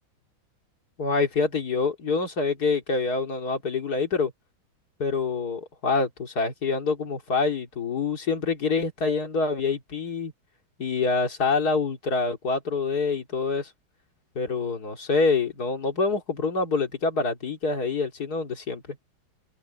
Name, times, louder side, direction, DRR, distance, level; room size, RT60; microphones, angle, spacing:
voice 1, 1.0-4.3 5.0-10.3 10.8-13.7 14.3-18.8, left 4 dB, 50° left, 3.1 m, -26 dB
open air
omnidirectional pair, 2.2 m